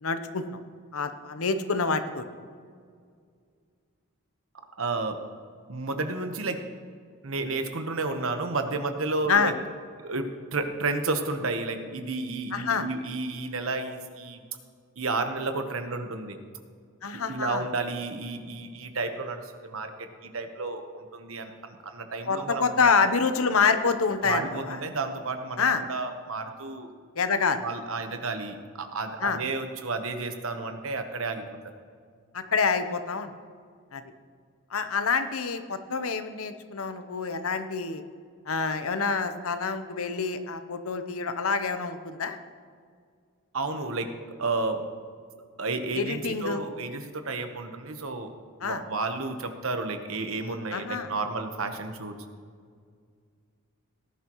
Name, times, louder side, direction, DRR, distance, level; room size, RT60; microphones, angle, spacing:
voice 1, 0.0-0.4 0.9-2.3 9.3-9.5 12.5-12.9 17.0-17.7 22.3-24.8 25.6-25.8 27.2-27.6 29.2-29.4 32.3-33.3 33.9-34.0 34.7-38.0 38.5-42.4 45.9-46.6 48.6-48.8 50.7-51.1, left 5 dB, 85° left, 9 dB, 0.8 m, -27 dB
voice 2, 4.8-5.2 5.7-6.6 7.2-9.5 10.0-14.4 15.0-16.4 17.1-22.9 24.2-26.9 27.6-31.4 43.5-44.1 44.4-44.8 45.6-48.3 48.6-52.1, right 3 dB, 75° right, 7 dB, 1.1 m, -31 dB
18.0 x 11.0 x 3.1 m, 2.1 s
head